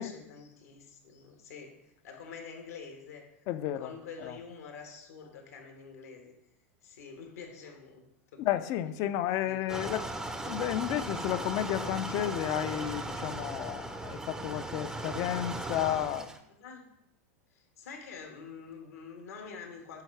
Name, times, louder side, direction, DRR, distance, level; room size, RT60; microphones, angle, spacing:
voice 1, 0.0-1.8 2.0-3.2 3.7-6.3 6.8-8.0 8.3-8.4 9.4-9.6 16.6-16.9 17.5-20.0, left 5 dB, 85° left, 3 dB, 1.4 m, -46 dB
voice 2, 3.5-3.9 4.2-4.4 8.4-16.3, left 12 dB, 50° left, 13 dB, 0.4 m, -32 dB
sound 1, 9.7-16.4, right 2 dB, 10° right, 0.5 m, -37 dB
7.5 x 4.6 x 3.3 m, 0.81 s
hypercardioid pair, 110°, 8 cm